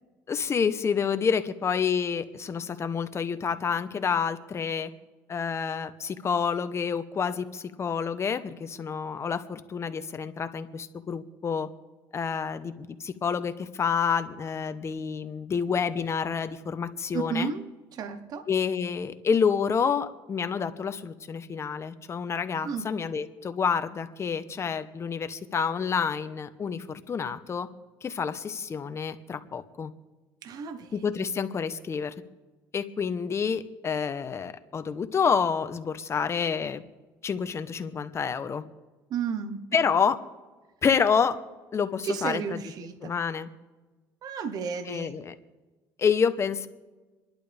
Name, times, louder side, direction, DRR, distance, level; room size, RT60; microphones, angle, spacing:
voice 1, 0.3-4.9 5.3-11.7 12.1-17.5 18.5-27.7 28.0-29.9 30.9-32.1 32.7-36.8 37.2-38.6 39.7-40.2 40.8-41.4 41.7-42.6 43.0-43.5 44.8-45.3 46.0-46.7, left 6 dB, 35° left, 10 dB, 1.2 m, -28 dB
voice 2, 17.1-18.5 22.6-22.9 30.4-31.2 39.1-39.7 42.0-43.1 44.2-45.2, right 6 dB, 55° right, 9 dB, 1.2 m, -33 dB
28.0 x 11.5 x 3.5 m, 1.2 s
supercardioid pair, 85°, 8 cm